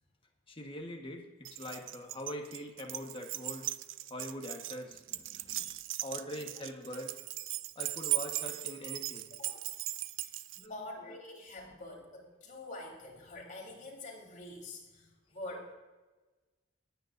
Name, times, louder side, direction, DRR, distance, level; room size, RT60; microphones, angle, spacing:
voice 1, 0.5-3.7 4.1-5.7 6.0-7.2 7.7-9.6 10.6-10.7 11.1-11.3, left 1 dB, 25° left, 2 dB, 1.4 m, -43 dB
Keys jangling, 1.4-10.7, right 15 dB, 70° right, 0.4 m, -38 dB
voice 2, 9.3-9.7 10.2-10.4 10.7-15.7, left 2 dB, 40° left, -2 dB, 3.8 m, -46 dB
19.5 x 9.2 x 2.6 m, 1.2 s
head